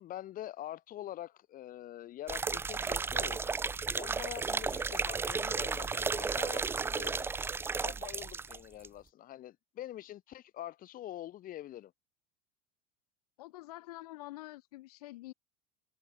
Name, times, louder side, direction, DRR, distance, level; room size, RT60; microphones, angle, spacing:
voice 1, 0.0-3.6 4.0-7.3 7.8-11.9, left 13 dB, 45° left, 2.3 m, -45 dB
sound 1, 2.3-8.6 8.8-8.9, right 5 dB, 10° right, 0.3 m, -33 dB
voice 2, 13.4-15.3, left 18 dB, 85° left, 1.8 m, -47 dB
supercardioid pair, 100°, 19 cm